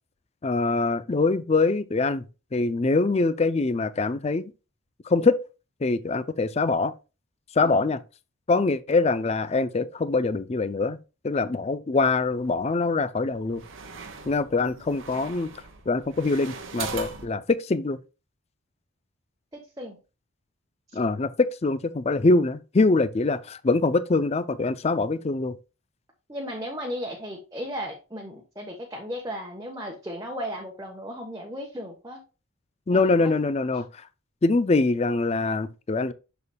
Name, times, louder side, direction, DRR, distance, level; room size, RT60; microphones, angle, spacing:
voice 1, 0.4-2.3 2.5-4.5 5.0-5.4 5.8-6.9 7.5-8.0 8.5-11.0 11.2-13.6 14.2-15.5 15.9-18.0 20.9-25.6 32.9-34.0 34.4-36.1, left 3 dB, 30° left, 0.4 m, -24 dB
sound 1, 12.0-12.7 13.3-17.3, right 5 dB, 60° right, 1.0 m, -40 dB
voice 2, 19.5-20.0 26.3-32.2 32.9-33.3, equal, 15° right, 1.0 m, -36 dB
6.8 x 6.8 x 2.3 m
head